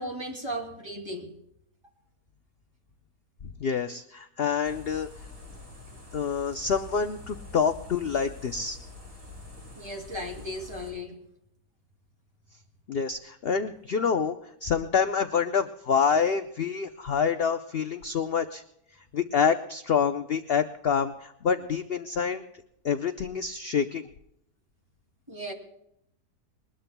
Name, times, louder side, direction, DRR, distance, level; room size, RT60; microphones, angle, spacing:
voice 1, 0.0-1.3 9.7-11.1 25.3-25.5, equal, 15° right, 1 dB, 2.7 m, -36 dB
voice 2, 3.6-5.1 6.1-8.8 12.9-18.6 19.1-22.4 22.8-24.1, left 6 dB, 55° left, 9 dB, 0.6 m, -27 dB
sound 1, 4.6-10.9, left 3 dB, 40° right, 6.8 m, -46 dB
21.5 x 20.0 x 2.2 m, 0.77 s
omnidirectional pair, 1.7 m